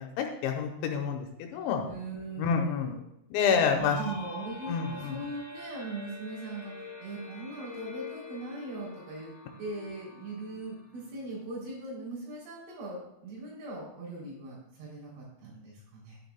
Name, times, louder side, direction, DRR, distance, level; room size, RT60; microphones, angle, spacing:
voice 1, 0.0-1.8 2.4-2.9 3.3-4.0 4.7-5.2, left 6 dB, 80° left, 3 dB, 3.1 m, -28 dB
voice 2, 1.5-3.1 3.7-6.7 7.0-9.3 9.6-16.2, right 2 dB, 75° right, -5 dB, 5.9 m, -40 dB
sound 1, 3.8-11.4, left 3 dB, 30° left, 3.6 m, -45 dB
12.0 x 9.5 x 2.3 m, 0.85 s
omnidirectional pair, 5.4 m